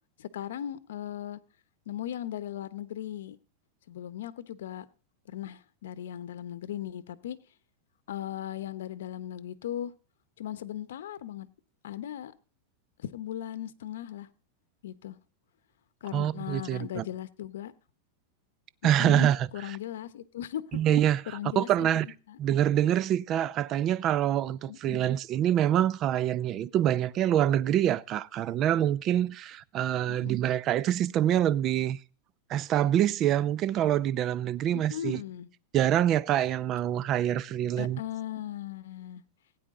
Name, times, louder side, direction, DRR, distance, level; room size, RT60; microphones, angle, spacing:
voice 1, 0.2-1.4 1.9-3.4 3.9-4.9 5.3-7.4 8.1-9.9 10.4-11.5 11.8-12.3 13.0-14.3 14.8-15.2 16.0-17.7 18.8-20.8 21.3-22.4 24.7-25.1 30.1-30.3 34.7-35.5 37.8-39.2, left 11 dB, 85° left, 0.9 m, -38 dB
voice 2, 16.1-17.0 18.8-19.5 20.7-22.1 22.4-32.0 32.5-35.2 35.7-38.0, right 11 dB, 30° right, 0.5 m, -26 dB
16.5 x 9.3 x 3.7 m
supercardioid pair, 150°, 0 cm